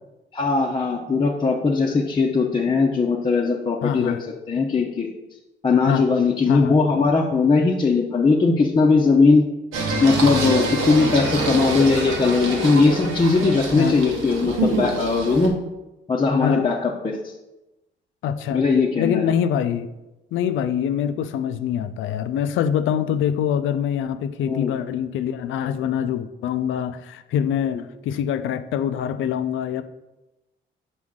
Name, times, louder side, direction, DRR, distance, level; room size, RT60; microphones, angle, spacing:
voice 1, 0.3-4.2 4.5-5.1 5.6-9.4 10.0-15.5 16.1-17.3 18.5-19.3 24.4-24.7, left 4 dB, 25° left, -3 dB, 0.7 m, -19 dB
voice 2, 3.8-4.2 5.7-6.0 6.5-6.8 13.8-14.0 16.4-16.7 18.2-18.7 19.0-19.9 20.3-29.8, left 9 dB, 80° left, 11 dB, 0.5 m, -24 dB
Singing, 9.7-15.5, right 2 dB, 80° right, 1.2 m, -25 dB
6.3 x 5.1 x 3.7 m, 1.0 s
cardioid pair, 90°, 20 cm